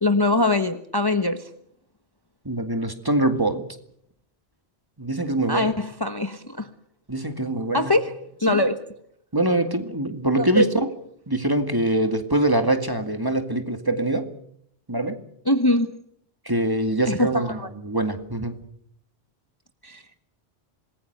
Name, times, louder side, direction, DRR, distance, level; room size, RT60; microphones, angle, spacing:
voice 1, 0.0-1.5 5.5-6.7 7.7-8.2 8.4-8.8 10.3-10.7 15.5-15.9 17.1-17.7 19.8-20.0, left 1 dB, 20° left, 1.2 m, -22 dB
voice 2, 2.4-3.6 5.0-5.8 7.1-7.9 8.5-8.6 9.3-10.7 11.3-14.3 14.9-15.2 16.5-18.6, right 1 dB, 20° right, 2.1 m, -24 dB
27.0 x 20.0 x 6.7 m
omnidirectional pair, 1.1 m